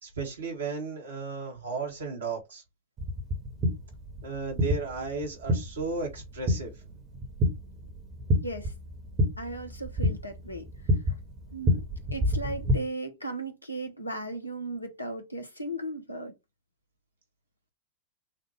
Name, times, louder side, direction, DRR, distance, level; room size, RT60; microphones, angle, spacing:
voice 1, 0.0-2.6 4.2-6.7, right 4 dB, 70° right, 1.9 m, -34 dB
sound 1, 3.0-12.8, left 1 dB, 30° right, 1.4 m, -29 dB
voice 2, 8.4-8.7 9.4-10.7 11.5-11.8 12.1-16.3, right 1 dB, 85° left, 1.1 m, -36 dB
6.4 x 2.6 x 3.1 m
figure-of-eight pair, 90°, 0 cm